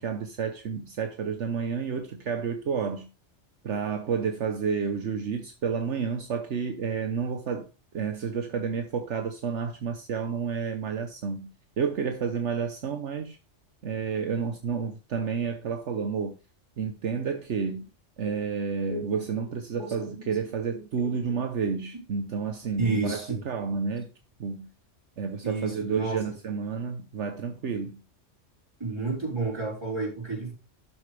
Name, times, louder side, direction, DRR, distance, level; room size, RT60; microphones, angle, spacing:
voice 1, 0.0-3.1 3.6-7.7 7.9-11.5 11.8-13.4 13.8-16.4 16.8-17.9 18.2-24.1 24.4-24.7 25.2-28.0, right 6 dB, 70° right, 1.2 m, -30 dB
voice 2, 19.7-20.3 20.7-21.4 22.8-23.4 25.4-26.2 28.8-30.5, right 3 dB, 20° right, 5.2 m, -31 dB
11.5 x 7.6 x 3.4 m
omnidirectional pair, 1.3 m